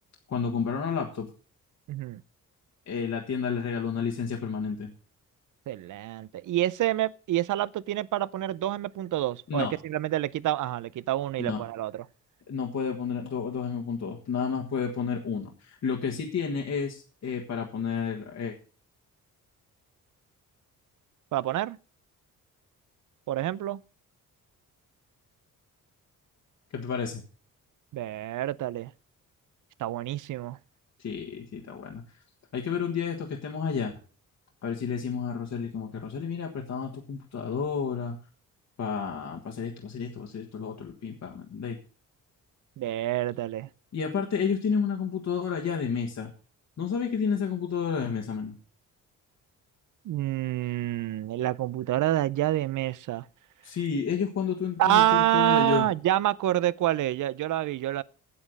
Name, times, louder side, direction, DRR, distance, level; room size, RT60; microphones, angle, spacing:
voice 1, 0.3-1.3 2.9-4.9 9.5-9.7 11.4-11.6 12.5-18.5 26.7-27.2 31.0-32.0 32.5-33.9 34.6-38.2 38.8-41.8 43.9-46.3 46.8-48.5 53.6-55.0 55.3-55.9, left 6 dB, 55° left, 1.5 m, -31 dB
voice 2, 1.9-2.2 5.7-12.0 21.3-21.8 23.3-23.8 27.9-28.9 29.8-30.6 42.8-43.7 50.0-53.3 54.8-58.0, right 13 dB, 65° right, 0.5 m, -27 dB
8.5 x 7.4 x 6.4 m
cardioid pair, 95°, 34 cm